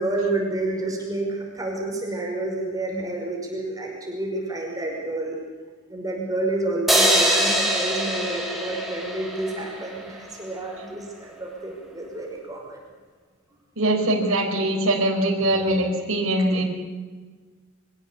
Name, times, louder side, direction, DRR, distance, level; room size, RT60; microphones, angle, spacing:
voice 1, 0.0-5.4 5.9-12.8 16.5-16.6, right 2 dB, 15° right, -2 dB, 5.5 m, -29 dB
sound 1, 6.9-10.2, right 1 dB, ahead, 3.7 m, -23 dB
voice 2, 13.8-16.6, right 1 dB, 65° right, 0 dB, 4.3 m, -22 dB
24.5 x 16.5 x 8.3 m, 1.4 s
head